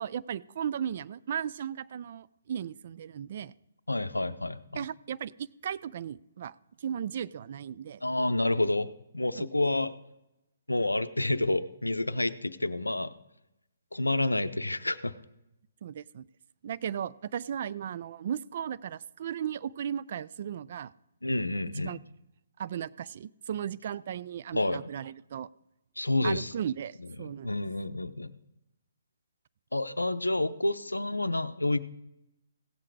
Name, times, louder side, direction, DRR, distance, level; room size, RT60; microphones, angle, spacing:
voice 1, 0.0-3.5 4.7-6.5 6.8-8.0 9.3-9.5 15.8-16.3 16.6-20.9 21.8-22.0 22.6-25.5 26.2-27.6, right 9 dB, 50° right, 17 dB, 0.3 m, -36 dB
voice 2, 3.9-4.9 8.0-8.9 9.1-9.9 10.7-13.1 13.9-15.1 21.2-21.9 24.5-24.8 26.0-26.5 27.2-28.3 29.7-31.8, left 2 dB, 90° left, 13 dB, 0.6 m, -29 dB
16.5 x 7.6 x 4.7 m, 0.90 s
figure-of-eight pair, 135°, 0 cm